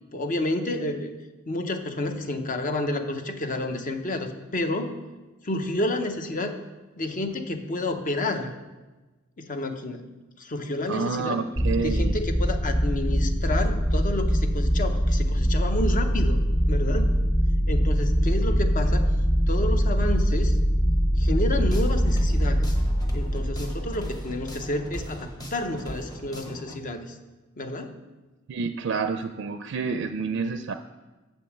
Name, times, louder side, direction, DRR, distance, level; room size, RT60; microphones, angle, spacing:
voice 1, 0.1-1.1 1.5-5.0 5.4-6.6 7.0-8.5 9.4-10.1 10.4-11.4 11.7-16.4 16.7-17.2 17.7-19.1 19.5-20.6 21.2-22.7 23.1-27.2 27.6-28.0, left 1 dB, 40° left, 7 dB, 0.7 m, -30 dB
voice 2, 10.9-12.2 28.5-30.7, right 4 dB, 65° right, 8 dB, 0.4 m, -28 dB
sound 1, 11.6-24.9, equal, 55° left, 1.9 m, -23 dB
sound 2, 21.5-26.8, equal, 20° left, 1.1 m, -39 dB
7.0 x 5.4 x 7.1 m, 1.2 s
head